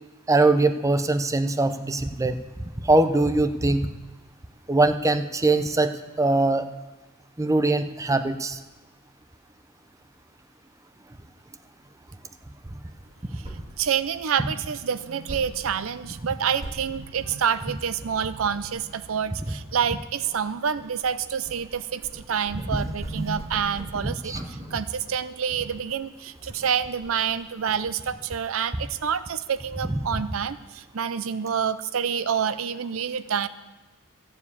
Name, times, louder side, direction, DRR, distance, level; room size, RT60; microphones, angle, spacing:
voice 1, 0.3-2.4 2.9-3.9 4.7-5.9 6.2-6.6 7.4-8.6 24.0-24.4, right 2 dB, 15° right, 9 dB, 0.5 m, -22 dB
sound 1, 12.9-27.8, right 1 dB, 30° right, 2.1 m, -42 dB
voice 2, 13.3-33.5, right 7 dB, 70° right, 14 dB, 0.5 m, -28 dB
13.0 x 7.2 x 8.4 m, 1.2 s
head